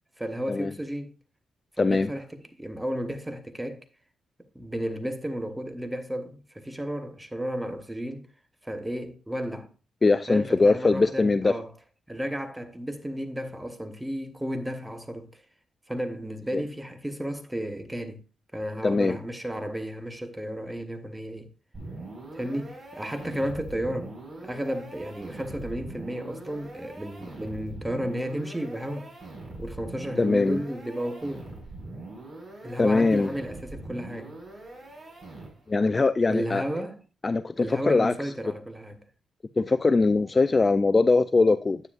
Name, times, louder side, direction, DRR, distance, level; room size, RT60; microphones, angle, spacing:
voice 1, 0.2-1.1 1.8-3.9 4.5-8.3 8.6-9.7 10.3-11.7 12.1-15.4 15.9-18.2 18.5-21.5 22.3-24.1 24.4-29.1 29.6-31.5 32.6-34.4 36.3-37.0 37.6-39.0, equal, 10° right, 1.0 m, -33 dB
voice 2, 1.8-2.1 10.0-11.5 16.5-16.6 18.8-19.2 30.2-30.6 32.8-33.3 35.7-36.6 37.2-38.1 39.6-41.8, left 3 dB, 30° left, 0.3 m, -22 dB
sound 1, 21.7-35.8, right 2 dB, 25° right, 4.8 m, -42 dB
9.8 x 9.3 x 2.4 m
cardioid pair, 105°, 0 cm